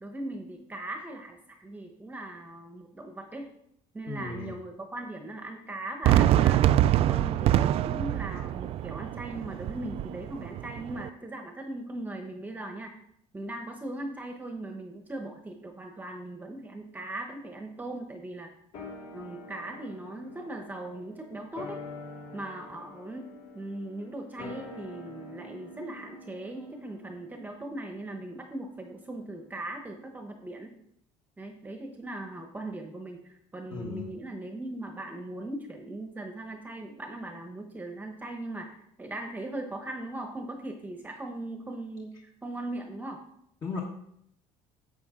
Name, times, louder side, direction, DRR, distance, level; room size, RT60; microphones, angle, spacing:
voice 1, 0.0-3.5 3.9-6.7 7.1-12.9 13.3-18.5 19.1-21.8 22.3-30.7 31.4-43.2, right 1 dB, 15° right, 4 dB, 1.0 m, -39 dB
voice 2, 4.1-4.5 33.7-34.1 43.6-43.8, left 4 dB, 30° left, -1 dB, 1.3 m, -35 dB
Fireworks, 6.0-11.1, right 13 dB, 50° right, 0.3 m, -25 dB
sound 1, 18.7-29.3 29.6-29.7, left 2 dB, 80° left, 4.6 m, -46 dB
11.5 x 7.5 x 3.7 m, 0.73 s
cardioid pair, 145°, 13 cm